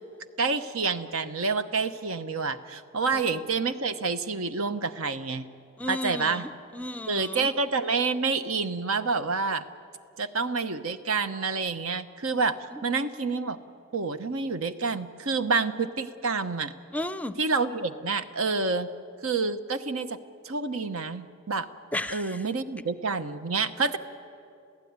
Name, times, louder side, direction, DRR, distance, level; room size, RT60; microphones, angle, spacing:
voice 1, 0.4-5.5 5.9-6.4 7.1-9.6 10.2-13.6 13.9-16.7 17.4-18.9 19.2-20.2 20.4-21.7 22.1-24.0, right 4 dB, 85° right, 10 dB, 1.0 m, -28 dB
voice 2, 5.8-7.5 12.7-12.8 16.9-17.4 21.9-22.4, left 1 dB, 5° left, 12 dB, 0.5 m, -34 dB
28.5 x 16.0 x 9.6 m, 2.5 s
head